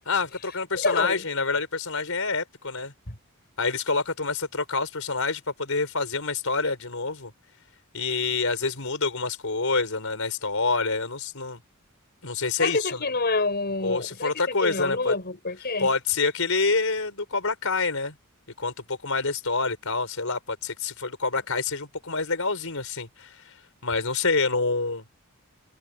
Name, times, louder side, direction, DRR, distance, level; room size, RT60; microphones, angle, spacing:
voice 1, 0.0-2.9 3.6-7.3 7.9-11.6 12.2-13.0 13.8-15.1 15.8-18.1 18.6-23.5 23.8-25.0, left 4 dB, 70° left, 5.1 m, -27 dB
voice 2, 0.7-1.2 3.1-3.2 12.6-15.9, left 3 dB, 45° left, 6.5 m, -27 dB
head